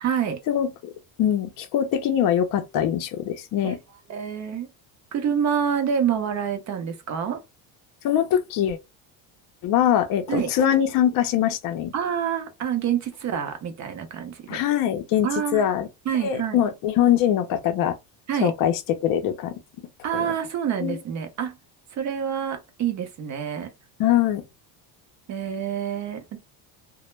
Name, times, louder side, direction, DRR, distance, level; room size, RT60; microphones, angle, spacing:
voice 1, 0.0-0.4 3.6-3.7 4.1-4.7 5.1-7.4 10.3-10.5 11.9-14.6 15.2-15.7 16.1-16.6 18.3-18.5 20.0-21.6 21.9-23.7 25.3-26.4, right 8 dB, 35° right, 0.6 m, -27 dB
voice 2, 1.2-3.8 8.0-8.8 9.6-11.9 14.5-15.9 16.2-17.9 18.4-18.7 19.0-19.5 20.1-20.3 20.8-21.0 24.0-24.4, left 10 dB, 45° left, 0.5 m, -22 dB
2.1 x 2.1 x 3.0 m
cardioid pair, 135°, 46 cm